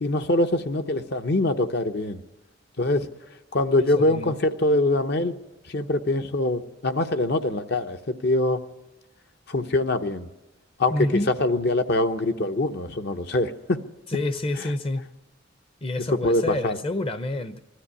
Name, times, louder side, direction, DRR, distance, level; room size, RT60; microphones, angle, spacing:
voice 1, 0.0-2.2 2.8-3.1 3.5-5.4 5.7-8.6 9.5-10.3 10.8-11.1 11.4-13.8 14.6-14.7 16.1-16.8, left 2 dB, 55° left, 0.9 m, -24 dB
voice 2, 3.9-4.3 10.9-11.3 14.1-15.0 15.8-17.6, left 1 dB, 30° left, 0.7 m, -28 dB
20.5 x 13.0 x 9.7 m
head